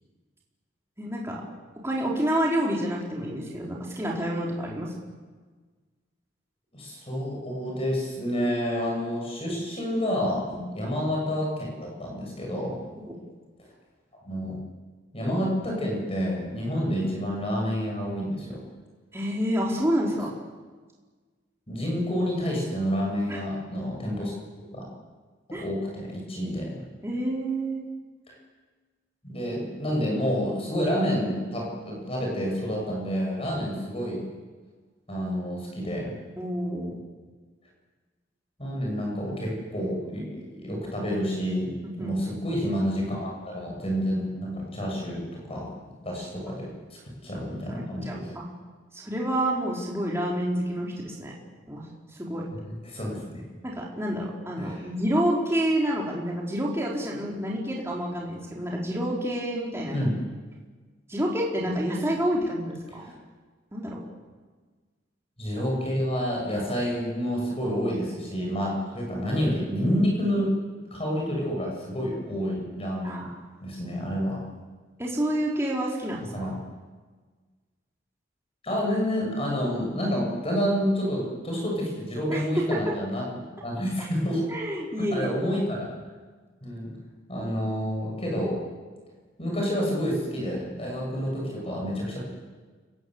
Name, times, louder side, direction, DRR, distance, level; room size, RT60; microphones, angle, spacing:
voice 1, 1.0-1.4 1.8-4.9 13.1-13.2 19.1-20.3 23.3-23.4 25.5-25.6 27.0-27.8 36.4-37.0 42.0-42.1 47.8-48.4 48.9-51.3 51.7-51.8 52.2-52.5 53.6-60.0 61.1-63.1 63.7-64.0 73.0-73.3 75.0-76.3 82.3-82.8 84.5-85.3, equal, 15° right, -3 dB, 4.4 m, -28 dB
voice 2, 6.7-12.8 14.2-14.6 15.1-18.6 21.7-24.3 24.7-24.9 25.5-26.8 28.3-28.4 29.2-34.3 35.1-36.1 38.6-45.7 46.0-46.7 47.2-48.3 52.5-53.4 54.6-54.8 59.9-60.2 63.0-63.1 65.4-70.5 70.9-73.3 73.6-74.4 76.3-76.6 78.6-83.3 83.6-84.5 85.0-86.0 86.6-86.9 87.3-88.6 89.4-92.2, equal, 30° left, -1 dB, 7.8 m, -29 dB
29.5 x 20.5 x 8.2 m, 1.4 s
head